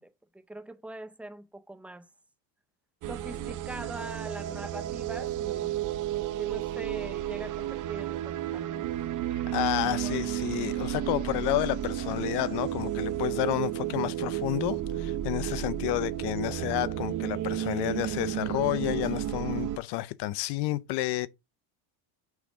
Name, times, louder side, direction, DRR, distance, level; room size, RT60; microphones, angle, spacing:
voice 1, 0.0-2.1 3.1-5.9 6.4-8.9 10.0-10.2 13.3-13.4, right 1 dB, 5° right, 0.5 m, -43 dB
sound 1, 3.0-19.8, right 12 dB, 40° right, 0.7 m, -32 dB
voice 2, 9.5-21.3, left 17 dB, 55° left, 0.6 m, -30 dB
6.3 x 3.4 x 4.9 m
supercardioid pair, 115°, 49 cm